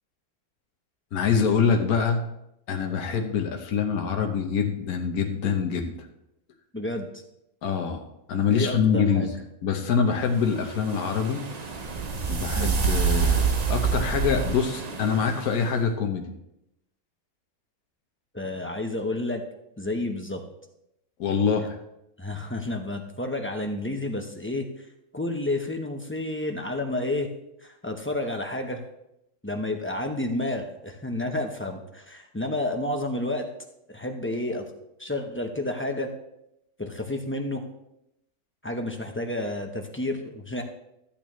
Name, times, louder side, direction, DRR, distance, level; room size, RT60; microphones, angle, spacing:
voice 1, 1.1-2.2 2.7-6.1 7.6-8.0 8.3-9.3 9.6-11.4 12.3-16.3 21.2-21.8, left 6 dB, 75° left, 3 dB, 1.4 m, -25 dB
voice 2, 6.7-7.1 8.5-9.3 12.5-12.7 18.3-19.4 19.8-20.4 21.6-21.7 22.2-24.7 25.1-27.3 27.6-28.8 29.4-33.5 33.9-34.6 35.0-36.1 36.8-37.6 38.6-40.6, left 1 dB, 10° left, 3 dB, 0.6 m, -30 dB
sound 1, 10.3-15.6, right 6 dB, 40° right, 0.6 m, -27 dB
14.0 x 8.6 x 3.1 m, 0.84 s
omnidirectional pair, 1.6 m